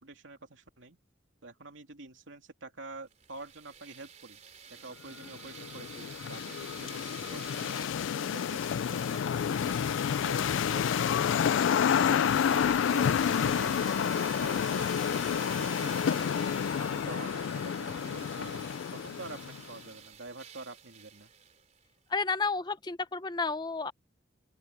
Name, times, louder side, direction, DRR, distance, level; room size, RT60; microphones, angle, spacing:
voice 1, 0.0-1.0 1.4-4.4 4.8-11.3 11.9-14.9 15.3-16.4 16.8-21.3, right 2 dB, 75° right, 2.7 m, -47 dB
sound 1, 3.1-21.8, right 7 dB, 35° right, 3.7 m, -47 dB
sound 2, 5.2-19.7, left 8 dB, 75° left, 0.3 m, -29 dB
voice 2, 22.1-23.9, left 4 dB, 20° left, 0.7 m, -31 dB
open air
head